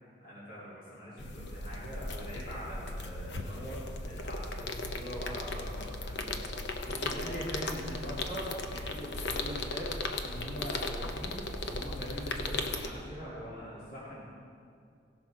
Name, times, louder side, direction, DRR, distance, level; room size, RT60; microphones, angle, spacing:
voice 1, 0.2-3.8 4.0-6.4 6.8-9.9 10.2-14.3, equal, 45° left, -9 dB, 2.6 m, -42 dB
sound 1, 1.2-12.9, left 2 dB, 65° left, 0.8 m, -37 dB
17.0 x 6.1 x 4.7 m, 2.3 s
head